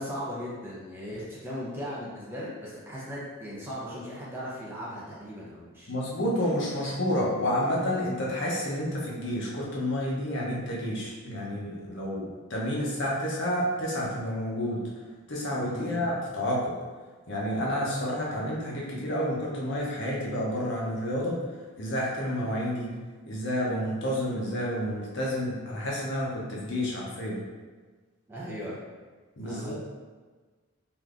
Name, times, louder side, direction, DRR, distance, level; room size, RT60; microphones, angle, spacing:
voice 1, 0.0-5.9 15.7-16.0 28.3-28.8 29.4-29.7, equal, 10° right, -7 dB, 0.5 m, -37 dB
voice 2, 5.9-14.8 15.3-16.8 17.3-21.4 21.7-22.9 23.3-27.4 29.4-29.7, equal, 55° left, -4 dB, 0.7 m, -30 dB
3.4 x 2.6 x 2.4 m, 1.4 s
head